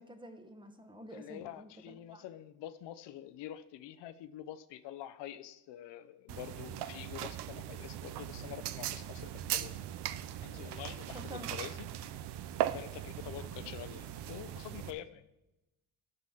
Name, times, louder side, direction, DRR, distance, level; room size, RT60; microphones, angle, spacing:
voice 1, 0.0-2.2 11.1-11.6, equal, 10° right, 6 dB, 1.0 m, -49 dB
voice 2, 1.1-9.8 10.4-11.9 12.7-15.3, left 12 dB, 90° left, 13 dB, 0.8 m, -46 dB
sound 1, 6.3-14.9, right 12 dB, 75° right, 0.7 m, -39 dB
12.0 x 4.1 x 7.1 m, 0.94 s
cardioid pair, 130°, 41 cm